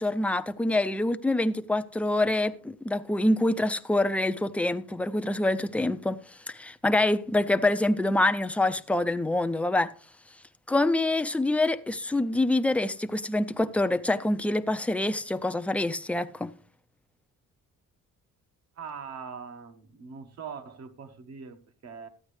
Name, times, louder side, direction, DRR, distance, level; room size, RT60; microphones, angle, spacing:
voice 1, 0.0-6.2 6.5-9.9 10.7-16.5, left 2 dB, 5° left, 0.4 m, -26 dB
voice 2, 18.7-22.1, right 6 dB, 55° right, 1.3 m, -42 dB
13.0 x 9.1 x 3.2 m
cardioid pair, 120°, 31 cm